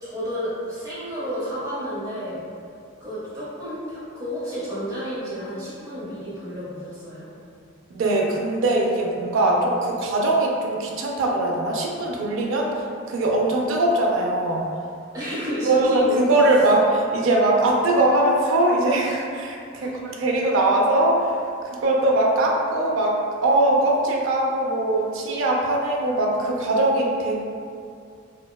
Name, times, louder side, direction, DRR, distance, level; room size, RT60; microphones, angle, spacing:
voice 1, 0.0-2.4 3.0-7.3 9.4-9.8 15.1-16.2 19.8-20.0, equal, 15° right, -11 dB, 0.7 m, -31 dB
voice 2, 7.9-12.7 13.1-14.7 15.7-19.9 20.2-21.4 21.6-27.3, right 1 dB, 70° right, -1 dB, 0.4 m, -21 dB
2.9 x 2.1 x 2.2 m, 2.3 s
head